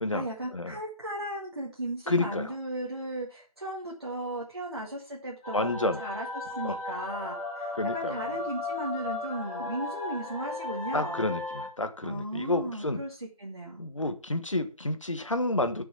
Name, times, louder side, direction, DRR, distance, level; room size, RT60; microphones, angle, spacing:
voice 1, 0.1-11.3 12.0-13.8, right 1 dB, 45° right, -2 dB, 2.0 m, -36 dB
voice 2, 2.1-2.5 5.5-6.0 6.6-6.8 7.8-8.2 10.9-13.0 13.8-15.8, left 2 dB, 55° left, 10 dB, 1.4 m, -30 dB
sound 1, 5.4-11.7, left 2 dB, 15° left, 3.4 m, -36 dB
7.9 x 6.2 x 7.1 m, 0.36 s
figure-of-eight pair, 175°, 19 cm